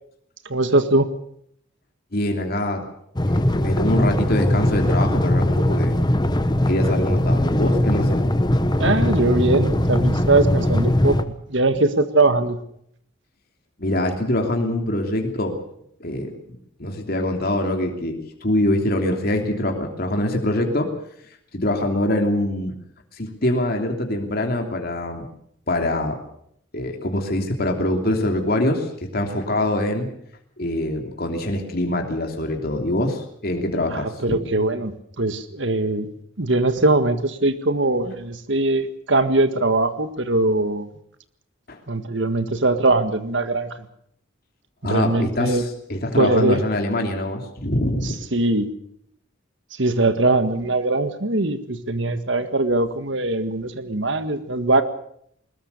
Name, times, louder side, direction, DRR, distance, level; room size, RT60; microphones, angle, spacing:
voice 1, 0.5-1.1 8.8-12.6 33.9-34.9 35.2-36.1 36.4-40.9 41.9-43.9 44.8-45.6 46.1-46.6 48.3-48.7 49.7-54.8, right 2 dB, 65° right, 10 dB, 1.8 m, -21 dB
voice 2, 2.1-2.9 3.3-6.0 6.7-8.3 13.8-15.6 16.0-20.9 21.5-22.7 23.2-25.3 25.7-26.2 26.7-30.1 30.6-34.4 41.7-41.8 44.8-48.2, left 1 dB, 50° left, 3 dB, 3.0 m, -24 dB
sound 1, 3.2-11.2, left 1 dB, 20° left, 1.0 m, -20 dB
21.0 x 20.5 x 6.8 m, 0.69 s
head